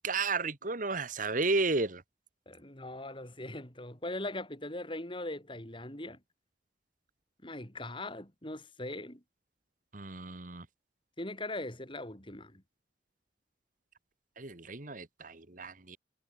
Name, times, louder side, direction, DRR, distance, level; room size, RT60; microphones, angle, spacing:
voice 1, 0.0-2.0 9.9-10.7 14.4-16.0, right 3 dB, 50° right, 1.9 m, -33 dB
voice 2, 2.5-6.2 7.4-9.2 11.2-12.6, left 1 dB, 30° left, 6.7 m, -40 dB
head